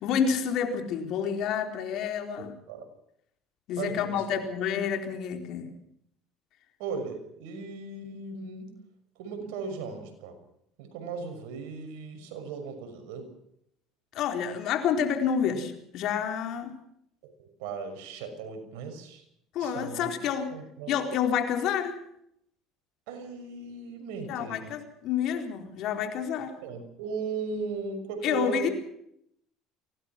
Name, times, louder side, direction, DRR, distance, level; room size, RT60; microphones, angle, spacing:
voice 1, 0.0-2.5 3.7-5.7 14.1-16.8 19.5-20.5 20.9-21.9 24.3-26.6 28.2-28.7, left 7 dB, 65° left, 5 dB, 4.4 m, -29 dB
voice 2, 2.4-2.9 3.8-4.4 6.8-8.8 9.2-10.4 10.8-13.3 17.2-19.2 19.6-20.2 20.5-20.9 23.1-24.7 26.6-28.7, right 4 dB, 80° right, 6 dB, 6.2 m, -37 dB
24.0 x 18.5 x 6.1 m, 0.73 s
supercardioid pair, 95°, 0 cm